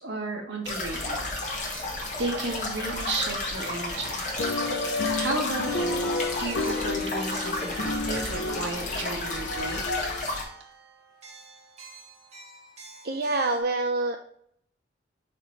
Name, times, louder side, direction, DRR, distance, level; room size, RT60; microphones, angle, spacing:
voice 1, 0.0-1.9 2.2-4.2 5.1-6.1 6.4-10.1, right 2 dB, 80° right, 1 dB, 1.6 m, -34 dB
sound 1, 0.6-10.4, left 2 dB, 45° left, 1.7 m, -32 dB
sound 2, 1.6-13.6, right 4 dB, 40° right, 1.5 m, -49 dB
sound 3, 4.4-10.5, left 2 dB, 70° left, 0.6 m, -31 dB
voice 2, 13.0-14.2, right 2 dB, 55° right, 4 dB, 0.5 m, -26 dB
5.4 x 4.2 x 4.5 m, 0.67 s
head